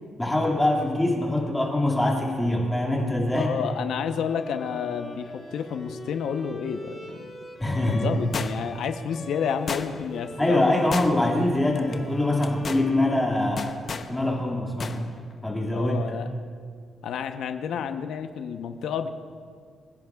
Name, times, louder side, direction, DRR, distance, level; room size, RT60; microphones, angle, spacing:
voice 1, 0.2-3.5 7.6-8.2 10.4-15.1 15.4-16.0, left 1 dB, 10° left, -3 dB, 2.2 m, -24 dB
voice 2, 3.3-7.2 7.8-11.1 15.7-16.3 17.0-19.1, left 7 dB, 80° left, 7 dB, 0.8 m, -30 dB
Bowed string instrument, 4.2-13.9, left 1 dB, 25° left, 3.3 m, -43 dB
sound 1, 8.3-8.8 9.7-10.2 10.9-11.4 11.8-12.0 12.4-12.9 13.6-14.1 14.8-15.0 15.3-15.4, left 5 dB, 45° left, 0.8 m, -32 dB
28.5 x 11.0 x 2.4 m, 2.1 s
cardioid pair, 110°, 0 cm